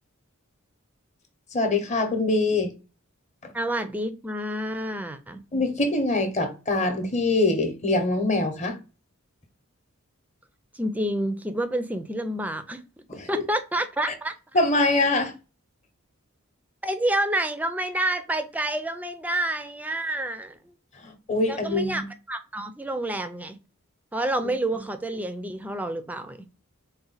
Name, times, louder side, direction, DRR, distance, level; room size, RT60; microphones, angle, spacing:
voice 1, 1.5-2.7 3.4-3.5 5.5-8.8 13.1-13.4 14.5-15.3 21.0-22.1, left 2 dB, 30° left, 0.8 m, -24 dB
voice 2, 3.5-5.4 10.7-12.8 13.3-14.3 16.8-20.7 21.5-23.6 24.1-26.4, right 1 dB, 5° right, 0.4 m, -28 dB
4.0 x 2.2 x 3.9 m
head